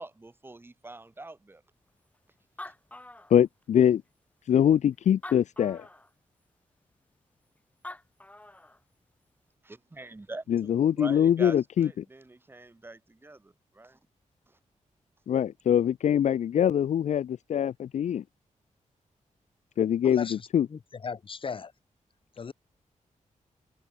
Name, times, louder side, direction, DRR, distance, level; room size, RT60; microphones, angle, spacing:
voice 1, 0.0-1.6 2.6-2.7 9.6-14.0 14.5-14.6, right 2 dB, 15° right, 7.9 m, -44 dB
Animal, 2.1-2.2 2.4-3.8 4.5-4.6 5.1-6.1 7.6-7.7 7.8-8.8, left 1 dB, 10° left, 6.5 m, -44 dB
voice 2, 3.3-4.0 4.5-5.9 10.5-12.0 15.3-18.2 19.8-20.7, left 9 dB, 65° left, 0.4 m, -23 dB
voice 3, 20.0-21.7 22.4-22.5, left 5 dB, 40° left, 1.6 m, -38 dB
wide cardioid pair, 175°, 13 cm